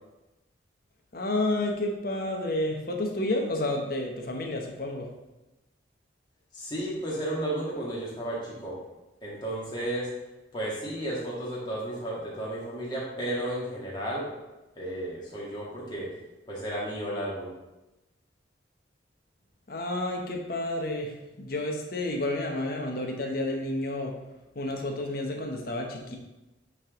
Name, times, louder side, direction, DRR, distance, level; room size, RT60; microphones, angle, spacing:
voice 1, 1.1-5.1 19.7-24.1 24.5-26.2, left 1 dB, 50° left, 1 dB, 1.0 m, -30 dB
voice 2, 6.5-8.8 9.2-10.1 10.5-14.3 14.8-16.1 16.5-17.5, right 1 dB, 25° left, -6 dB, 1.8 m, -33 dB
8.5 x 3.5 x 3.7 m, 1.0 s
head